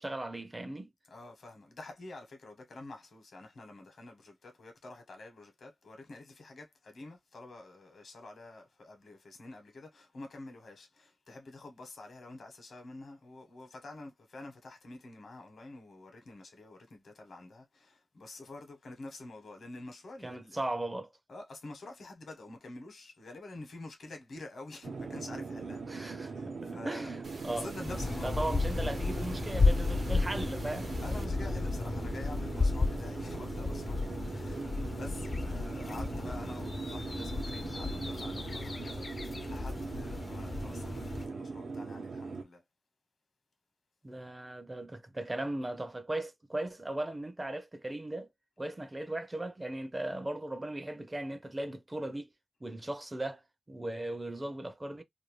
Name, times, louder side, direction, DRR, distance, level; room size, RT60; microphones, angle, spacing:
voice 1, 0.0-0.9 20.2-21.1 25.9-26.3 26.6-27.2 27.4-27.7 28.2-30.9 44.0-48.3 48.6-52.3 52.6-53.4 53.7-55.0, right 1 dB, 25° right, 0.4 m, -37 dB
voice 2, 1.1-20.6 21.3-27.1 27.4-28.5 29.8-29.9 31.0-42.6, left 2 dB, 80° left, 0.9 m, -48 dB
sound 1, 24.8-42.4, right 4 dB, 85° right, 0.5 m, -41 dB
sound 2, 27.2-31.2, right 2 dB, 65° right, 0.9 m, -49 dB
sound 3, 27.9-41.3, left 3 dB, 40° left, 0.3 m, -33 dB
2.5 x 2.1 x 3.0 m
wide cardioid pair, 90°, 0 cm